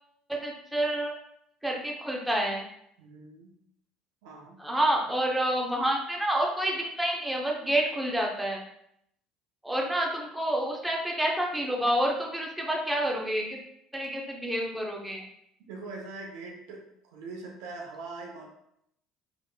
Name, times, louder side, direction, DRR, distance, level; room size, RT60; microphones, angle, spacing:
voice 1, 0.3-1.1 1.6-2.6 4.6-8.6 9.6-13.6 13.9-15.2, right 1 dB, 5° right, -1 dB, 0.9 m, -28 dB
voice 2, 3.0-3.5 4.2-4.6 15.7-16.8 17.1-18.4, right 3 dB, 70° right, -1 dB, 0.9 m, -42 dB
3.9 x 3.5 x 2.3 m, 0.75 s
hypercardioid pair, 65°, 0 cm